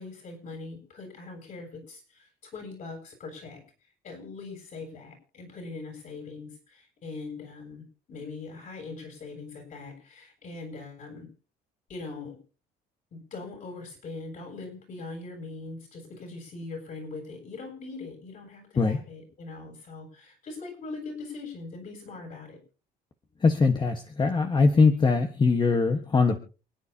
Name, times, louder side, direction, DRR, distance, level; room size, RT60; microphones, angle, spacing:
voice 1, 0.0-3.6 4.0-11.3 11.9-12.4 13.1-22.6, left 3 dB, 50° left, 2 dB, 8.0 m, -41 dB
voice 2, 23.4-26.4, left 4 dB, 25° left, 6 dB, 1.4 m, -22 dB
28.5 x 9.7 x 2.8 m, 0.36 s
cardioid pair, 110°, 17 cm